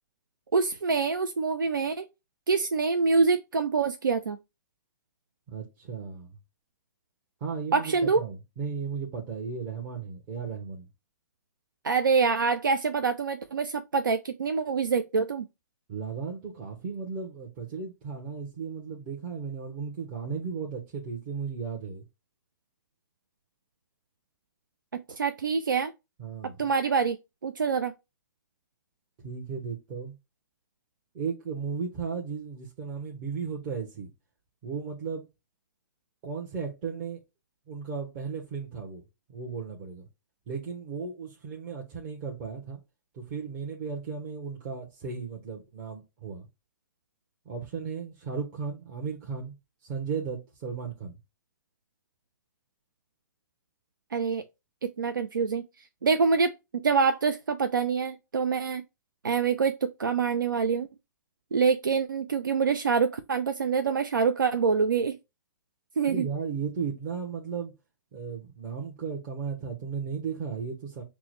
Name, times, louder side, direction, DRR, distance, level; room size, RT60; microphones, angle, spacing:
voice 1, 0.5-2.1 2.5-4.4 7.7-8.2 11.8-15.5 24.9-25.9 26.4-27.2 27.4-27.9 54.1-54.4 54.8-58.8 59.2-60.9 61.5-65.2 66.0-66.3, right 5 dB, 90° right, 0.4 m, -26 dB
voice 2, 5.5-6.3 7.4-10.9 15.9-22.0 26.2-26.6 29.2-30.1 31.1-34.1 34.6-35.2 36.2-37.2 37.7-39.0 39.3-40.0 40.5-42.8 43.1-46.4 47.5-49.5 49.8-51.1 66.1-67.7 68.1-71.0, right 5 dB, 40° right, 0.9 m, -35 dB
5.9 x 2.1 x 3.1 m
hypercardioid pair, 125°, 11 cm